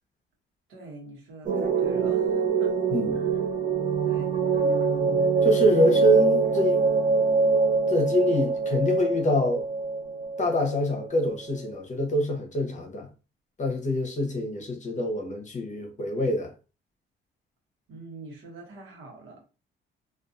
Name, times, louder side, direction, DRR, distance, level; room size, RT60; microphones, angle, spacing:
voice 1, 0.7-2.7 3.1-3.2 4.0-5.3 17.9-19.4, right 2 dB, 85° right, 1.0 m, -43 dB
sound 1, 1.4-11.6, right 4 dB, 45° right, 0.6 m, -24 dB
voice 2, 5.4-6.8 7.9-9.6 10.4-13.1 13.6-16.5, equal, 40° left, 0.8 m, -25 dB
2.6 x 2.4 x 2.4 m
cardioid pair, 90°, 20 cm